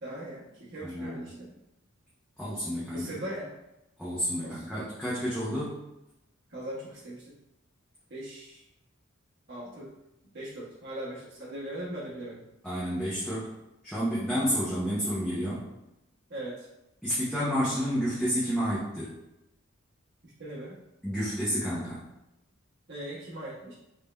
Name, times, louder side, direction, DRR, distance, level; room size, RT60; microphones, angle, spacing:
voice 1, 0.0-1.5 2.9-3.5 4.4-4.7 6.5-7.3 8.1-8.6 9.5-9.9 10.3-12.4 16.3-16.7 20.4-20.8 22.9-23.7, right 1 dB, 55° right, -9 dB, 1.4 m, -39 dB
voice 2, 0.8-1.3 2.4-3.1 4.0-5.8 12.6-13.5 13.8-15.6 17.0-19.1 21.0-22.0, equal, 5° left, -10 dB, 0.8 m, -30 dB
3.6 x 2.8 x 3.3 m, 0.91 s
head